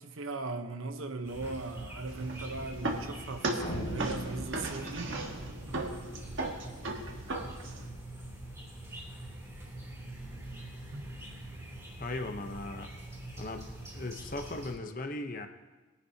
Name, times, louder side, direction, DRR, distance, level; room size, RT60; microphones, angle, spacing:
voice 1, 0.0-5.2 10.9-11.1, right 3 dB, 80° right, 0.9 m, -38 dB
sound 1, 1.2-14.7, right 1 dB, 15° right, 2.7 m, -44 dB
sound 2, 2.1-7.9, right 2 dB, 65° right, 1.4 m, -37 dB
sound 3, 3.6-6.1, left 1 dB, 85° left, 2.0 m, -41 dB
voice 2, 12.0-12.9 13.4-15.5, left 2 dB, 40° left, 0.8 m, -38 dB
21.5 x 9.9 x 2.8 m
head